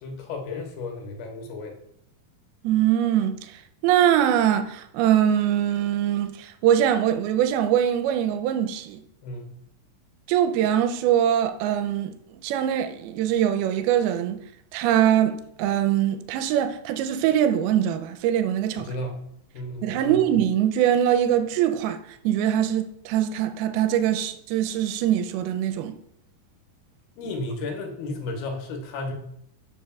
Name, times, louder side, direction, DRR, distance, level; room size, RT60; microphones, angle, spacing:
voice 1, 0.0-1.7 9.2-9.5 18.8-19.3 19.5-20.2 27.2-29.1, left 2 dB, 75° left, 2.7 m, -33 dB
voice 2, 2.6-3.5 3.8-9.0 10.3-12.1 12.4-14.4 14.7-18.9 19.8-22.0 22.2-26.0 27.2-27.3, right 10 dB, 80° right, 2.4 m, -22 dB
13.0 x 5.6 x 2.3 m
omnidirectional pair, 4.6 m